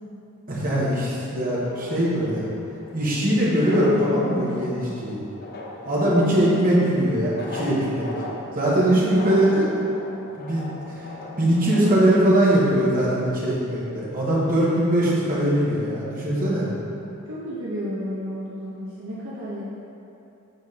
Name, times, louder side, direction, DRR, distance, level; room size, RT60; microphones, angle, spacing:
voice 1, 0.5-2.4 2.9-5.2 5.8-8.1 8.5-9.9 10.4-10.7 11.4-16.7, right 1 dB, 40° right, -7 dB, 1.4 m, -21 dB
sound 1, 1.6-13.4, left 2 dB, 45° left, 0.6 m, -39 dB
voice 2, 8.9-9.6 17.2-19.7, equal, 65° right, -8 dB, 1.0 m, -32 dB
7.0 x 4.1 x 4.2 m, 2.8 s
head